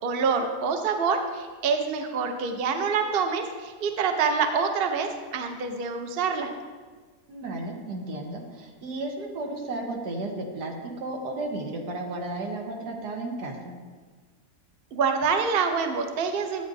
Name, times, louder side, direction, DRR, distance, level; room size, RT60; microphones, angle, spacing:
voice 1, 0.0-6.5 14.9-16.6, right 5 dB, 50° right, 5 dB, 0.7 m, -26 dB
voice 2, 7.3-13.8, right 2 dB, 90° right, 1 dB, 1.7 m, -33 dB
11.0 x 8.4 x 2.6 m, 1.5 s
omnidirectional pair, 1.7 m